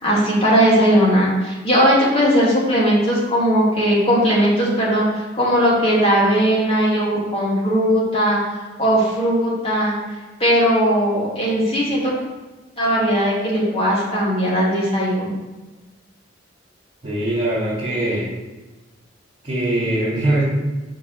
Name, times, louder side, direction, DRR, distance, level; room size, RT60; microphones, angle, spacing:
voice 1, 0.0-8.4 8.8-9.9 10.4-12.1 12.8-15.3, equal, 30° left, -6 dB, 2.7 m, -18 dB
voice 2, 17.0-18.3 19.4-20.4, right 1 dB, 30° right, -10 dB, 2.8 m, -21 dB
6.1 x 5.3 x 6.6 m, 1.2 s
head